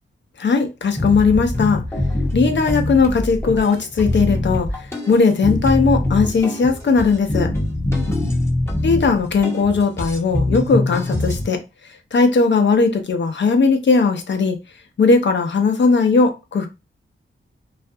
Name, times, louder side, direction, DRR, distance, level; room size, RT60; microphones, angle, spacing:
voice 1, 0.4-1.8 2.3-7.5 8.8-11.6 12.1-14.6 15.0-16.7, left 4 dB, 60° left, 0.5 m, -18 dB
sound 1, 1.0-11.4, left 1 dB, 10° left, 0.7 m, -23 dB
2.4 x 2.2 x 2.6 m
wide cardioid pair, 100°, 21 cm